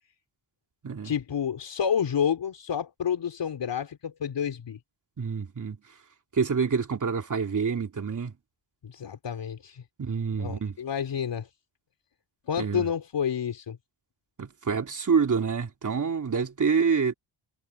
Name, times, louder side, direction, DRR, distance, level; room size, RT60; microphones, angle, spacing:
voice 1, 1.0-4.8 8.8-9.8 10.4-11.5 12.5-13.8, left 8 dB, 55° left, 4.4 m, -29 dB
voice 2, 5.2-5.8 6.3-8.3 10.0-10.8 12.6-12.8 14.4-17.1, right 5 dB, 35° right, 3.3 m, -27 dB
wide cardioid pair, 155°, 50 cm